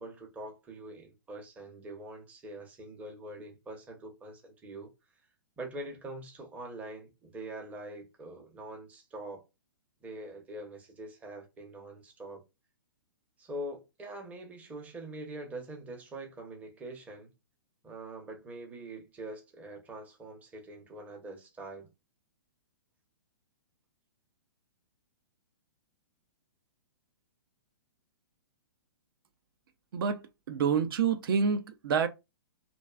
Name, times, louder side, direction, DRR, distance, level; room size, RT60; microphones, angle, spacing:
voice 1, 0.0-4.9 5.6-9.4 10.0-12.4 13.4-17.3 17.8-21.9, right 1 dB, 10° right, 0.6 m, -44 dB
voice 2, 30.5-32.1, right 6 dB, 65° right, 0.4 m, -27 dB
2.4 x 2.2 x 2.3 m
hypercardioid pair, 135°, 13 cm